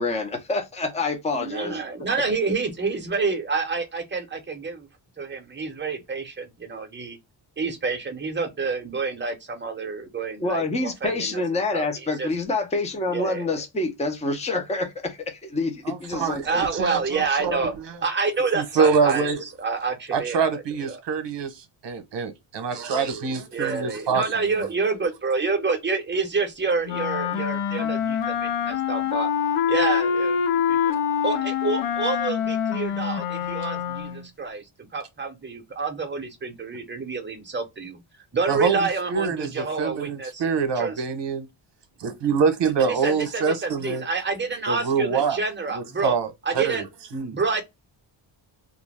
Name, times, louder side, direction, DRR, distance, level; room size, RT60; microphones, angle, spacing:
voice 1, 0.0-1.8 10.4-16.4, left 3 dB, 15° left, 0.6 m, -27 dB
voice 2, 1.3-4.9 5.2-7.2 7.6-11.4 11.7-11.9 12.2-12.3 13.1-13.5 16.4-17.7 18.0-21.0 23.5-29.3 29.7-38.0 38.3-40.4 40.8-41.0 42.6-46.2 46.4-46.8 47.3-47.6, right 4 dB, 20° right, 0.7 m, -28 dB
voice 3, 15.9-17.7 18.5-19.4 20.1-24.2 38.5-38.8 39.1-41.5 42.0-44.0 44.7-45.4 45.7-46.3 46.5-46.8 47.1-47.4, right 5 dB, 60° right, 0.9 m, -25 dB
Wind instrument woodwind instrument, 26.8-34.3, left 8 dB, 85° left, 0.7 m, -25 dB
2.5 x 2.2 x 3.2 m
cardioid pair, 125°, 49 cm